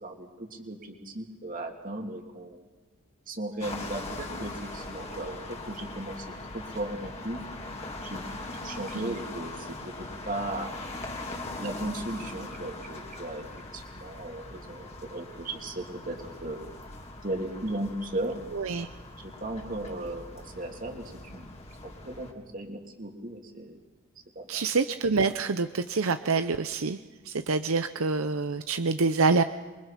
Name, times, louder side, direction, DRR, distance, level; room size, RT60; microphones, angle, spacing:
voice 1, 0.0-2.6 3.3-6.3 6.5-7.4 8.0-10.7 11.6-13.5 13.7-16.6 17.2-18.4 19.2-21.5 21.8-23.8 24.3-24.6, right 1 dB, 40° right, 3 dB, 3.0 m, -36 dB
sound 1, 3.6-22.3, left 2 dB, 30° left, 3.0 m, -41 dB
voice 2, 18.5-18.9 24.5-27.0 27.2-29.4, right 4 dB, 75° right, 10 dB, 0.7 m, -26 dB
28.0 x 23.5 x 5.8 m, 1.3 s
head